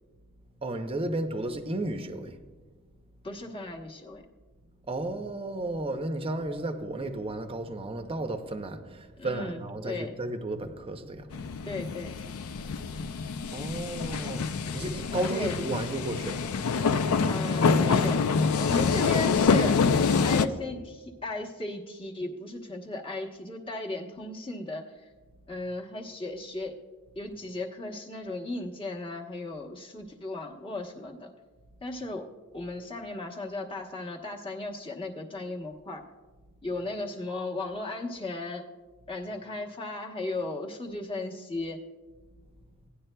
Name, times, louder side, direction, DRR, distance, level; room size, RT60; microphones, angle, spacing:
voice 1, 0.6-2.4 4.9-11.4 13.5-14.5 14.7-16.4, right 2 dB, 25° right, 0.7 m, -33 dB
voice 2, 3.2-4.2 9.2-10.1 11.6-12.2 15.3-15.6 17.2-18.2 18.6-19.9 20.2-25.1 25.5-26.8 27.2-31.3 31.8-36.0 36.6-38.6 39.1-41.8, left 2 dB, 25° left, 1.0 m, -36 dB
sound 1, 11.3-20.5, left 5 dB, 75° left, 0.4 m, -26 dB
17.0 x 10.0 x 2.2 m
head